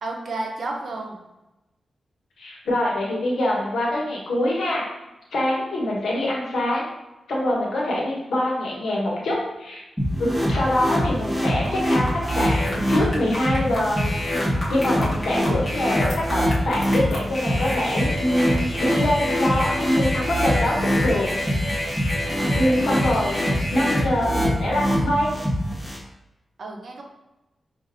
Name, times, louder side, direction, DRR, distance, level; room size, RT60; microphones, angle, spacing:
voice 1, 0.0-1.2 26.6-27.0, right 2 dB, 70° right, 1 dB, 0.7 m, -31 dB
voice 2, 2.4-4.8 5.3-6.8 7.3-9.8 10.2-14.1 14.7-21.8 22.6-25.3, left 1 dB, 90° left, -4 dB, 1.1 m, -24 dB
sound 1, 10.0-26.0, equal, ahead, 1.2 m, -24 dB
sound 2, 11.6-24.0, left 1 dB, 40° left, 1.0 m, -30 dB
5.3 x 2.5 x 2.6 m, 0.98 s
wide cardioid pair, 90°, 0 cm